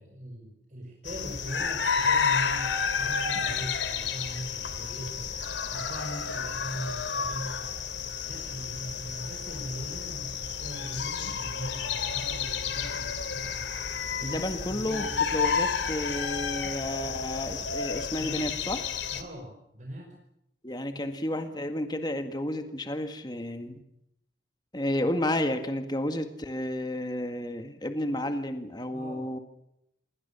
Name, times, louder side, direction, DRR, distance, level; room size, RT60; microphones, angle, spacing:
voice 1, 0.0-5.3 5.7-7.7 8.3-13.7 14.2-15.0 18.2-18.6 19.1-20.1 20.9-21.1 28.9-29.3, equal, 45° right, 1 dB, 5.3 m, -40 dB
sound 1, 1.0-19.2, left 6 dB, 90° left, 3.0 m, -31 dB
voice 2, 14.2-18.9 20.6-23.8 24.7-29.4, left 1 dB, 25° left, 7 dB, 1.9 m, -31 dB
27.5 x 22.0 x 7.0 m, 0.80 s
head